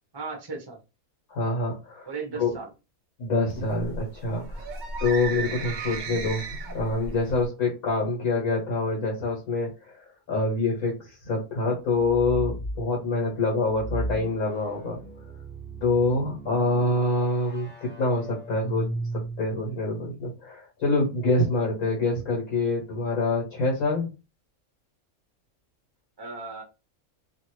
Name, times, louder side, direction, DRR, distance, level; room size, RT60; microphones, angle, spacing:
voice 1, 0.1-0.8 2.1-2.7 26.2-26.6, right 4 dB, 25° right, 1 dB, 0.6 m, -36 dB
voice 2, 1.3-2.1 2.4-2.5 3.2-4.6 5.0-6.5 6.7-9.9 10.3-15.0 15.8-18.9 19.4-24.1, left 2 dB, 75° left, -3 dB, 1.6 m, -26 dB
sound 1, 3.5-7.5, right 3 dB, 65° right, 0.4 m, -35 dB
sound 2, 11.9-12.8 13.7-19.7, right 1 dB, 20° left, 0.3 m, -36 dB
3.0 x 2.5 x 3.0 m, 0.28 s
omnidirectional pair, 1.5 m